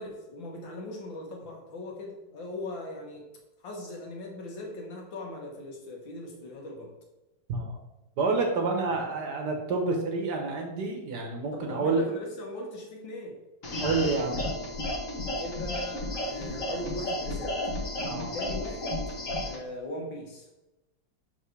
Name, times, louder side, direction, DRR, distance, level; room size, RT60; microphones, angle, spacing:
voice 1, 0.0-3.3 3.6-6.9 11.5-13.4 15.4-17.6 18.3-19.0 19.4-20.5, left 1 dB, 65° left, 0 dB, 2.0 m, -39 dB
voice 2, 8.2-12.0 13.8-14.5 18.0-18.3, right 4 dB, 60° right, 2 dB, 1.5 m, -28 dB
sound 1, 13.6-19.6, left 1 dB, 45° left, 1.4 m, -33 dB
6.3 x 5.9 x 3.3 m, 0.98 s
omnidirectional pair, 2.3 m